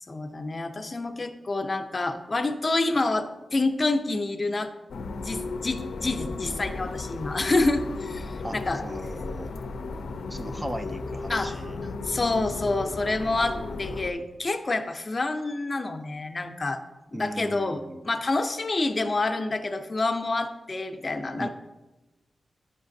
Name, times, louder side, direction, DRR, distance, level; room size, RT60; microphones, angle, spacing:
voice 1, 0.1-4.7 5.2-8.8 11.3-11.5 12.0-16.8 17.1-21.5, left 2 dB, 35° left, 7 dB, 0.5 m, -28 dB
sound 1, 4.9-14.1, left 3 dB, 90° left, 0.4 m, -35 dB
voice 2, 8.4-9.5 10.3-11.8 13.2-13.4 13.7-13.8 17.1-18.1 21.4-21.5, right 1 dB, 20° right, 7 dB, 0.3 m, -38 dB
9.7 x 5.8 x 2.6 m, 1.1 s
wide cardioid pair, 100°, 0 cm